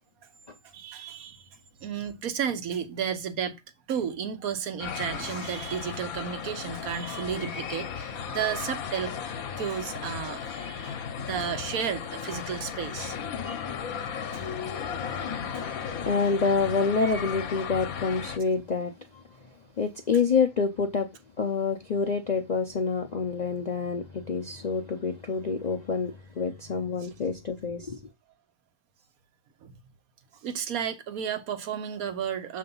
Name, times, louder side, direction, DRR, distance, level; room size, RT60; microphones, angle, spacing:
voice 1, 0.7-3.6 3.9-9.2 9.6-13.1 13.4-13.6 14.3-14.4 14.7-15.1 15.5-15.6 27.0-27.1 29.6-29.7 30.4-32.6, right 8 dB, 80° right, 1.3 m, -33 dB
sound 1, 4.8-18.4, left 7 dB, 75° left, 1.2 m, -35 dB
voice 2, 15.6-19.2 19.8-21.1 21.4-28.0, left 5 dB, 55° left, 0.4 m, -27 dB
6.7 x 3.2 x 5.3 m
omnidirectional pair, 1.5 m